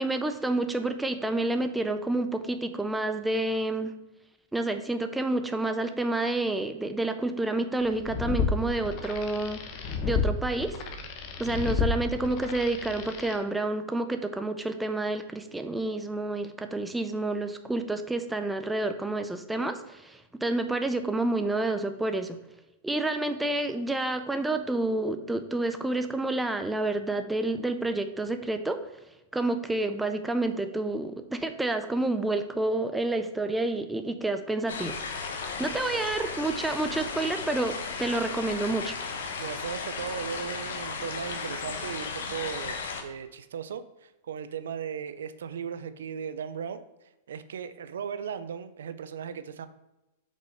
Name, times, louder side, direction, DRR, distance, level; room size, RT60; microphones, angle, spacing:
voice 1, 0.0-3.9 4.5-9.6 10.0-10.8 11.4-22.4 22.8-28.8 29.3-35.0 35.6-39.0, right 2 dB, 5° right, 7 dB, 0.4 m, -29 dB
sound 1, 7.9-13.4, left 5 dB, 40° left, 0.8 m, -31 dB
sound 2, 34.7-43.0, left 5 dB, 80° left, 1.1 m, -35 dB
voice 2, 35.6-36.1 39.4-42.8 43.0-46.8 47.3-49.7, right 7 dB, 90° right, 12 dB, 0.4 m, -37 dB
5.3 x 4.1 x 5.0 m, 0.96 s
supercardioid pair, 145°, 0 cm